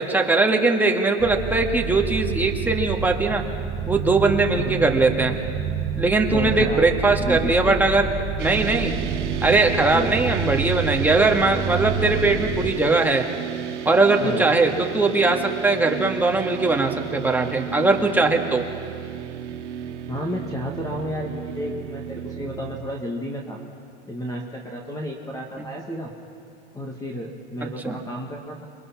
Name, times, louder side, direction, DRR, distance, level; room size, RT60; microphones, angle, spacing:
voice 1, 0.0-3.4 3.9-5.4 5.9-8.1 8.4-9.0 9.4-13.3 13.9-18.6 27.8-28.0, right 3 dB, 5° right, 1 dB, 1.8 m, -20 dB
sound 1, 1.2-12.7, right 6 dB, 25° right, 5.6 m, -29 dB
voice 2, 4.5-4.8 6.3-6.9 7.2-7.8 9.9-10.2 14.2-14.5 20.1-23.6 24.1-26.1 26.7-28.7, equal, 10° left, 0 dB, 2.0 m, -31 dB
sound 2, 8.4-22.8, right 10 dB, 85° right, 1.5 m, -33 dB
27.5 x 23.0 x 6.0 m, 2.6 s
hypercardioid pair, 125°, 34 cm